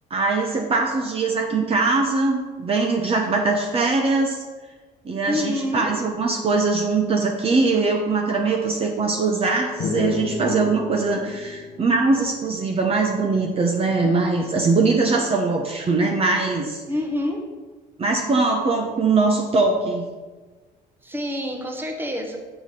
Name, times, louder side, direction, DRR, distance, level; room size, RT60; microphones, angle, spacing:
voice 1, 0.1-4.4 5.0-16.8 18.0-20.0, right 3 dB, 35° right, 1 dB, 0.9 m, -21 dB
voice 2, 5.2-5.9 16.9-17.4 21.0-22.4, left 1 dB, 10° right, 3 dB, 1.2 m, -27 dB
sound 1, 9.8-13.4, left 4 dB, 60° left, 0.9 m, -32 dB
7.9 x 4.8 x 5.4 m, 1.3 s
cardioid pair, 110°, 17 cm